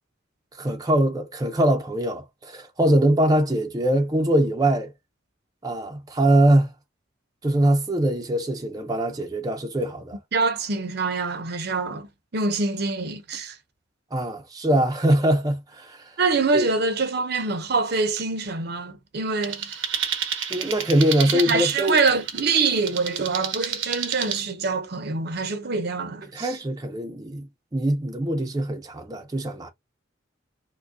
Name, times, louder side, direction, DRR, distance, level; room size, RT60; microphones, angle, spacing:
voice 1, 0.6-4.9 5.6-6.7 7.4-10.2 14.1-16.1 16.5-16.7 20.5-22.0 26.3-29.7, right 1 dB, 20° right, 0.6 m, -22 dB
voice 2, 10.3-12.1 12.3-13.6 16.2-19.8 21.3-26.5, right 4 dB, 55° right, 0.7 m, -25 dB
sound 1, 19.4-24.4, right 8 dB, 85° right, 0.8 m, -30 dB
4.7 x 2.2 x 2.6 m
head